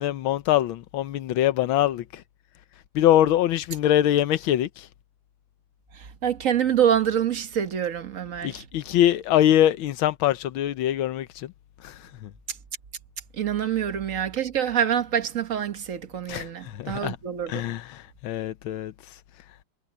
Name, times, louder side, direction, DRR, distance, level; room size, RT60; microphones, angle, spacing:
voice 1, 0.0-2.0 2.9-4.7 8.4-11.5 11.8-11.9 12.2-12.3 16.3-16.5 16.7-17.2 17.5-18.9, left 12 dB, 80° left, 1.6 m, -23 dB
voice 2, 6.2-8.6 13.4-17.6, right 9 dB, 45° right, 1.4 m, -26 dB
omnidirectional pair, 2.3 m